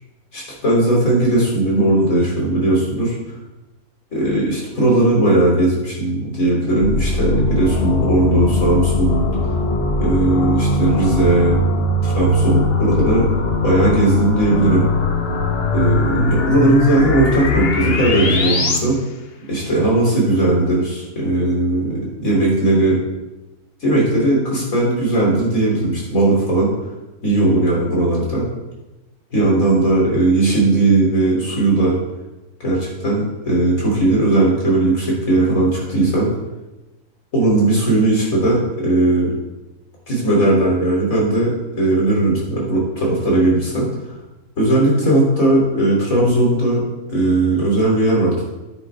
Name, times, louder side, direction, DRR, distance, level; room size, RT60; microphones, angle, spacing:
voice 1, 0.3-3.2 4.1-9.6 10.0-11.6 12.0-13.3 13.6-14.9 15.7-19.0 19.5-23.0 23.8-26.7 27.2-28.5 29.3-32.0 32.6-36.3 37.3-39.3 40.1-43.9 44.6-46.8 47.1-48.4, right 2 dB, 65° left, -4 dB, 3.6 m, -17 dB
sound 1, 6.8-18.8, left 2 dB, 45° left, 1.1 m, -20 dB
9.7 x 9.4 x 3.5 m, 1.1 s
omnidirectional pair, 1.6 m